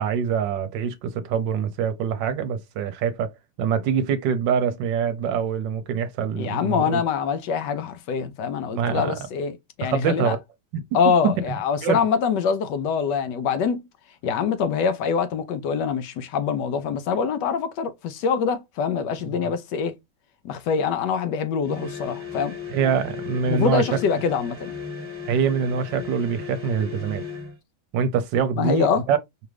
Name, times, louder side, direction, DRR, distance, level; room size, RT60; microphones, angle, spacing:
voice 1, 0.0-3.3 3.6-7.0 8.7-9.1 9.8-10.4 10.7-10.8 11.2-11.3 11.8-12.0 22.7-24.0 25.3-27.2 27.9-29.2, right 7 dB, 75° right, 1.3 m, -24 dB
voice 2, 6.4-10.4 10.9-13.8 14.2-19.9 20.4-22.6 23.5-24.7 28.6-29.0, left 6 dB, 75° left, 1.1 m, -24 dB
sound 1, 21.6-27.6, left 5 dB, 15° right, 1.3 m, -36 dB
4.7 x 2.5 x 3.2 m
omnidirectional pair, 2.1 m